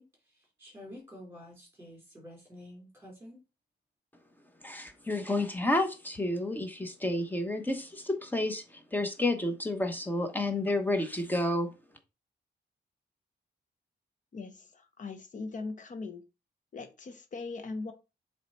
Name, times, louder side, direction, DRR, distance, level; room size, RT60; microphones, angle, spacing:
voice 1, 0.0-3.4, left 1 dB, 15° right, 3.1 m, -49 dB
voice 2, 4.6-11.7, left 1 dB, 10° left, 1.0 m, -30 dB
voice 3, 14.3-16.2 16.7-17.9, left 3 dB, 45° left, 1.1 m, -40 dB
7.4 x 3.3 x 4.4 m
wide cardioid pair, 160°, 18 cm